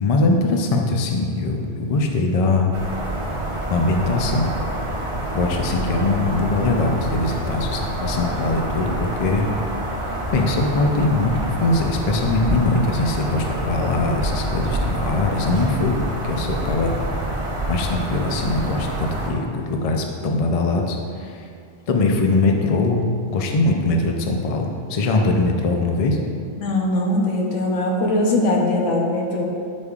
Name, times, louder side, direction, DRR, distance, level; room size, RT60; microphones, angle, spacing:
voice 1, 0.0-2.7 3.7-4.5 5.3-9.5 10.3-11.3 11.6-16.0 16.2-17.0 17.7-21.4 21.9-23.0 23.3-26.2, left 3 dB, 50° left, 2 dB, 0.4 m, -21 dB
sound 1, 2.7-19.3, right 1 dB, 30° right, 0.7 m, -27 dB
voice 2, 26.6-29.5, left 1 dB, 80° left, -1 dB, 1.2 m, -21 dB
8.0 x 5.2 x 2.4 m, 2.3 s
omnidirectional pair, 1.2 m